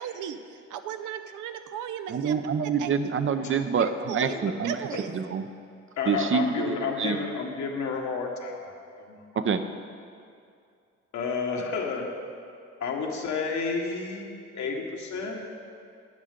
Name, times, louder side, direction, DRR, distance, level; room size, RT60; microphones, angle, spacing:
voice 1, 0.0-2.3 2.8-2.9 3.8-4.3 4.6-5.1, right 9 dB, 85° right, 9 dB, 0.7 m, -36 dB
voice 2, 2.1-4.9 5.1-5.4 6.1-7.2 9.4-9.6, right 6 dB, 45° right, 9 dB, 0.7 m, -27 dB
voice 3, 6.0-8.7 9.1-9.4 11.1-12.1 12.8-14.3 14.5-15.4, left 5 dB, 65° left, 0 dB, 1.7 m, -31 dB
13.5 x 9.3 x 3.8 m, 2.4 s
cardioid pair, 90°, 30 cm